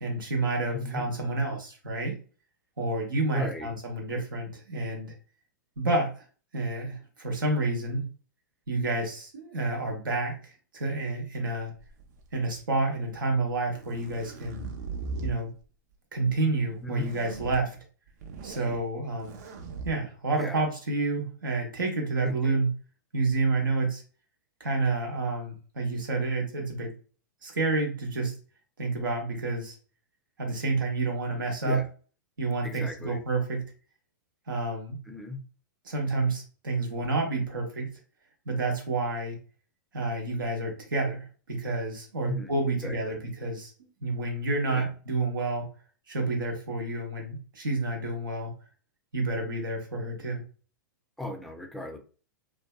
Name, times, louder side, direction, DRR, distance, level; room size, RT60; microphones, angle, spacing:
voice 1, 0.0-2.2 2.8-5.1 5.8-6.1 6.5-8.1 8.7-11.7 12.3-14.7 15.2-15.5 16.1-17.8 18.4-19.3 19.8-22.7 23.1-24.0 24.6-26.9 27.4-28.3 28.8-29.8 30.4-31.8 32.4-33.7 34.5-35.0 35.8-37.9 38.5-39.4 39.9-43.7 44.0-45.7 46.1-48.5 49.1-50.4, right 2 dB, 80° right, 1 dB, 0.8 m, -29 dB
voice 2, 0.7-1.0 3.3-3.7 16.8-17.1 20.4-20.7 22.2-22.6 31.6-31.9 32.6-33.2 35.1-35.4 42.2-42.5 42.8-43.2 44.7-44.9 51.2-52.0, left 2 dB, ahead, 4 dB, 0.4 m, -36 dB
sound 1, 11.8-12.6 13.5-15.4 16.9-17.6 18.1-18.8 19.2-19.9, right 4 dB, 55° right, 0.5 m, -39 dB
2.6 x 2.2 x 2.2 m, 0.38 s
hypercardioid pair, 105°, 11 cm